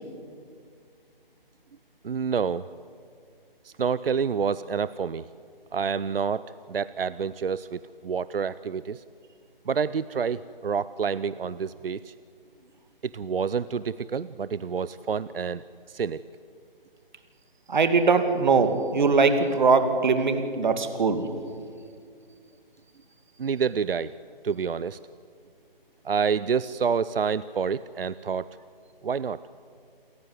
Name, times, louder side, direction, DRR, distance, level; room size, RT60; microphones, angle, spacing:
voice 1, 2.0-2.7 3.6-5.2 5.7-6.4 6.7-9.0 9.7-12.1 13.0-16.2 23.4-24.1 24.4-25.0 26.0-28.5 29.0-29.4, right 6 dB, 75° right, 17 dB, 0.7 m, -28 dB
voice 2, 17.7-21.3, right 4 dB, 50° right, 8 dB, 2.4 m, -21 dB
28.0 x 15.0 x 9.5 m, 2.2 s
figure-of-eight pair, 160°, 29 cm